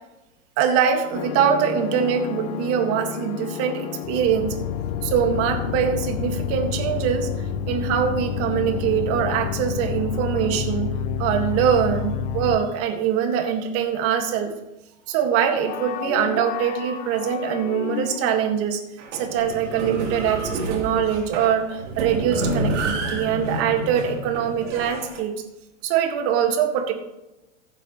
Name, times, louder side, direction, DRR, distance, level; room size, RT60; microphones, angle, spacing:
voice 1, 0.6-4.6 5.0-10.9 11.2-14.5 15.1-18.8 19.1-25.3 25.8-26.9, right 8 dB, 35° right, 5 dB, 1.8 m, -23 dB
sound 1, 1.1-12.6, left 7 dB, 55° left, 0.9 m, -29 dB
sound 2, 15.6-18.5, left 10 dB, 20° left, 0.8 m, -33 dB
sound 3, 19.0-25.2, right 2 dB, 65° right, 3.3 m, -29 dB
15.5 x 9.0 x 3.1 m, 0.97 s
hypercardioid pair, 135°, 38 cm